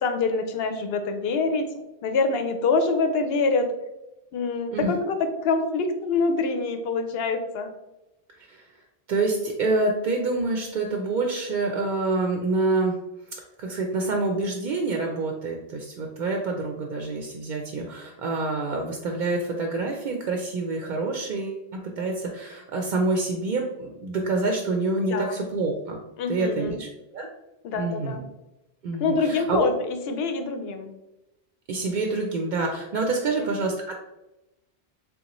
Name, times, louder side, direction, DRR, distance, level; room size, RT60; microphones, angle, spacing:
voice 1, 0.0-1.7 2.0-3.7 4.3-7.7 25.1-25.4 26.2-26.8 27.6-28.3 29.0-30.9 33.4-33.5, left 4 dB, 75° left, 7 dB, 0.8 m, -25 dB
voice 2, 8.4-8.7 9.1-13.0 13.6-21.6 22.0-26.0 26.3-27.3 27.8-28.2 28.8-29.6 31.7-33.9, right 3 dB, 60° right, 2 dB, 0.6 m, -27 dB
3.8 x 3.5 x 2.9 m, 0.96 s
omnidirectional pair, 1.0 m